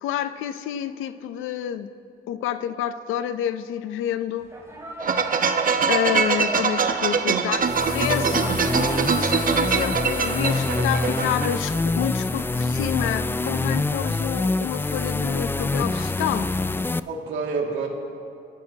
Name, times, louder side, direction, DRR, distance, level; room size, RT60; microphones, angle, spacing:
voice 1, 0.0-1.9 2.3-4.5 5.9-8.4 9.2-16.5, left 10 dB, 90° left, 12 dB, 0.6 m, -28 dB
sound 1, 4.4-11.1, right 1 dB, 15° right, 4.1 m, -39 dB
sound 2, 5.0-11.5, right 5 dB, 45° right, 1.0 m, -23 dB
sound 3, 7.6-17.0, left 3 dB, 10° left, 0.3 m, -26 dB
voice 2, 8.2-8.8 17.1-17.9, right 5 dB, 75° right, -1 dB, 2.3 m, -29 dB
25.0 x 13.5 x 2.9 m, 2.5 s
cardioid pair, 90°, 20 cm